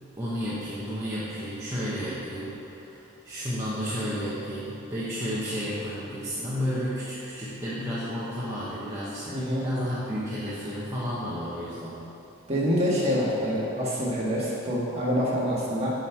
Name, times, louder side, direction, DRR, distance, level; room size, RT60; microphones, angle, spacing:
voice 1, 0.2-12.0, equal, 15° right, -10 dB, 0.9 m, -32 dB
voice 2, 9.3-9.6 12.5-15.9, equal, 30° right, -6 dB, 1.6 m, -26 dB
7.6 x 6.2 x 4.5 m, 2.8 s
head